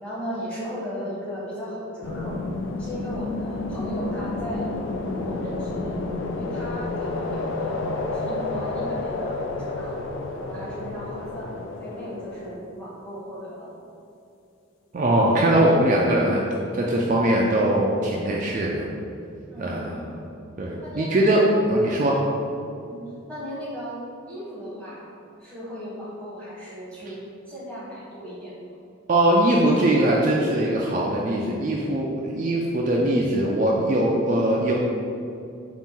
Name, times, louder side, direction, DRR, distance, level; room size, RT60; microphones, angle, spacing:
voice 1, 0.0-2.4 2.8-4.7 5.0-5.9 6.4-7.8 8.1-10.0 10.3-13.8 19.5-19.7 20.8-21.1 22.8-23.0 23.3-24.0 24.3-25.1 25.4-27.2 27.5-28.5, equal, 5° left, -9 dB, 1.1 m, -36 dB
sound 1, 2.0-12.6, left 2 dB, 65° left, 0.3 m, -30 dB
voice 2, 14.9-16.4 16.7-18.8 19.6-20.0 20.6-21.4 21.7-22.2 29.1-34.7, right 1 dB, 40° right, -3 dB, 0.3 m, -21 dB
4.0 x 2.5 x 3.6 m, 2.6 s
head